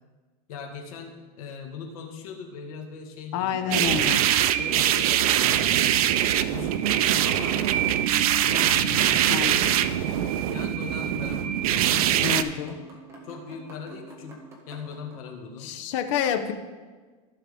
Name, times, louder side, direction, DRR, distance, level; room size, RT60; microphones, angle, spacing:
voice 1, 0.5-6.0 6.5-7.7 8.4-9.4 10.5-12.3 12.7-12.8 13.2-14.4 14.7-15.7, left 6 dB, 75° left, 2 dB, 1.8 m, -40 dB
voice 2, 3.3-4.2 9.3-9.7 12.2-12.7 15.6-16.5, left 9 dB, 55° left, 8 dB, 0.9 m, -28 dB
sound 1, 3.7-12.4, right 11 dB, 80° right, 0.5 m, -23 dB
sound 2, 12.2-15.2, right 2 dB, 15° right, 1.6 m, -48 dB
15.0 x 5.8 x 3.5 m, 1.4 s
supercardioid pair, 165°, 19 cm